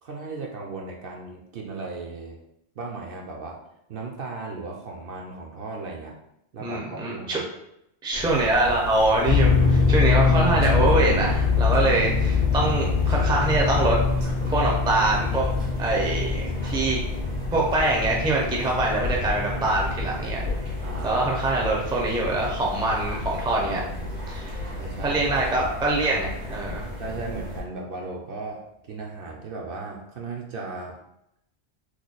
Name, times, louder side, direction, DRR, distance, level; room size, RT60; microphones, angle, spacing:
voice 1, 0.0-2.4 2.8-3.6 3.9-6.2 6.5-7.4 20.8-21.2 24.7-25.4 27.0-31.0, right 3 dB, 60° right, 0 dB, 0.7 m, -36 dB
voice 2, 6.6-7.4 8.0-14.0 14.5-15.5 15.8-17.0 17.5-20.4 21.0-23.8 24.3-24.5 25.0-26.9, right 2 dB, 5° right, -2 dB, 0.4 m, -24 dB
sound 1, 8.1-27.6, left 2 dB, 80° right, 1.5 m, -33 dB
sound 2, 9.3-22.5, left 5 dB, 60° left, 0.6 m, -24 dB
3.1 x 2.2 x 3.8 m, 0.80 s
omnidirectional pair, 1.2 m